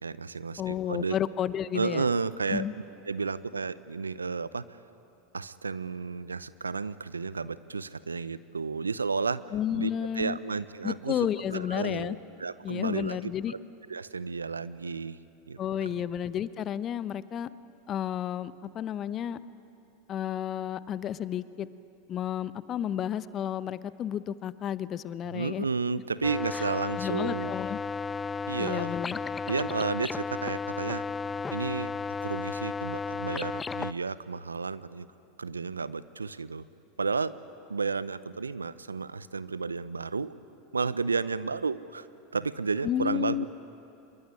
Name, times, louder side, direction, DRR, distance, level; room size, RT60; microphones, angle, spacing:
voice 1, 0.0-1.1 1.7-2.6 3.0-4.6 5.3-9.4 9.7-9.9 10.1-11.2 11.5-13.6 13.9-15.2 15.5-16.0 25.3-27.5 28.5-28.9 29.4-31.0 31.5-31.9 32.2-35.1 35.4-36.6 37.0-37.3 37.7-40.3 40.7-42.1 42.3-43.5, right 4 dB, 90° right, 17 dB, 0.7 m, -32 dB
voice 2, 0.6-2.1 2.5-2.7 9.5-10.4 10.8-12.2 12.6-13.5 15.6-17.5 17.9-19.4 20.1-21.7 22.1-25.6 26.5-26.6 27.0-27.8 28.6-29.2 42.8-43.5, left 10 dB, 35° left, 16 dB, 0.9 m, -32 dB
sound 1, 26.2-33.9, left 5 dB, 20° left, 0.5 m, -33 dB
25.5 x 22.0 x 9.9 m, 2.8 s
hypercardioid pair, 85°, 0 cm